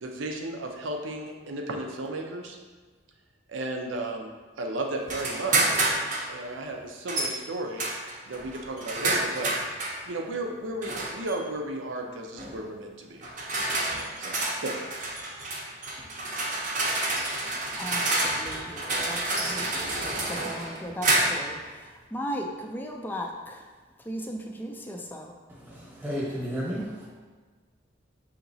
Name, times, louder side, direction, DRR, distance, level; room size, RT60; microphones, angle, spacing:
voice 1, 0.0-2.6 3.5-4.3 4.6-5.8 6.3-7.9 8.3-9.5 10.1-13.2 14.2-14.8, right 2 dB, 90° right, 2 dB, 0.6 m, -34 dB
sound 1, 5.1-6.3 7.1-7.3 7.8-10.0 10.8-11.3 12.4-12.6 13.2-21.5, right 2 dB, 40° right, 0.7 m, -29 dB
voice 2, 17.8-23.7 24.0-25.3, equal, 10° left, 1 dB, 0.3 m, -37 dB
voice 3, 25.5-27.1, equal, 10° right, -5 dB, 1.0 m, -33 dB
5.8 x 2.9 x 2.7 m, 1.4 s
head